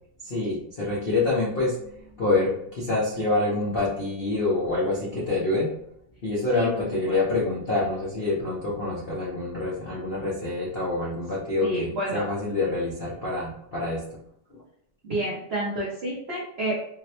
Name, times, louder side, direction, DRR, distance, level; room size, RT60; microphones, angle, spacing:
voice 1, 0.2-5.7 6.2-14.0 14.5-14.6, left 2 dB, 85° left, -6 dB, 0.5 m, -26 dB
voice 2, 6.5-7.2 11.6-12.3 15.0-17.0, right 1 dB, 85° right, -4 dB, 0.5 m, -30 dB
3.9 x 2.0 x 2.8 m, 0.73 s
omnidirectional pair, 2.1 m